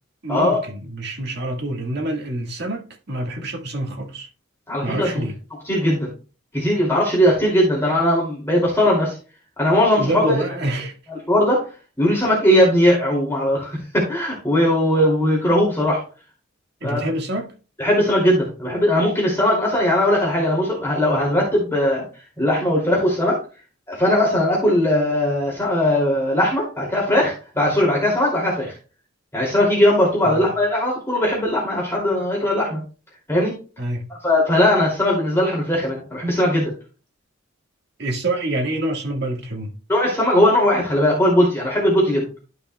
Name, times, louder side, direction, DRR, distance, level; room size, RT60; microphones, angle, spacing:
voice 1, 0.2-4.3 4.8-5.4 10.0-11.0 16.8-17.5 30.2-30.5 33.8-34.0 38.0-39.7, right 1 dB, 60° right, 1.9 m, -26 dB
voice 2, 4.7-5.2 5.6-6.1 6.5-9.2 9.6-10.4 11.3-11.7 12.0-16.0 16.8-17.1 17.8-22.0 22.4-23.4 23.9-28.7 29.3-32.8 33.3-33.6 34.2-36.7 39.9-42.3, left 1 dB, 15° left, 2.7 m, -19 dB
13.5 x 5.6 x 2.3 m
head